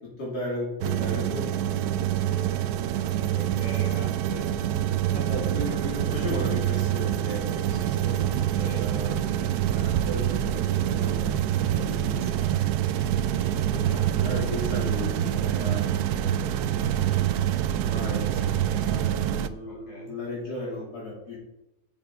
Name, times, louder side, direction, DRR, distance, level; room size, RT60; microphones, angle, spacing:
voice 1, 0.2-1.5 5.1-17.0 17.7-21.4, left 1 dB, 55° left, -5 dB, 3.1 m, -37 dB
sound 1, 0.8-19.5, right 11 dB, 75° right, 0.9 m, -26 dB
voice 2, 3.2-4.5 8.6-8.8 13.7-14.4 19.6-20.1, left 1 dB, 20° left, -3 dB, 2.8 m, -42 dB
7.4 x 7.2 x 5.2 m, 0.92 s
omnidirectional pair, 2.1 m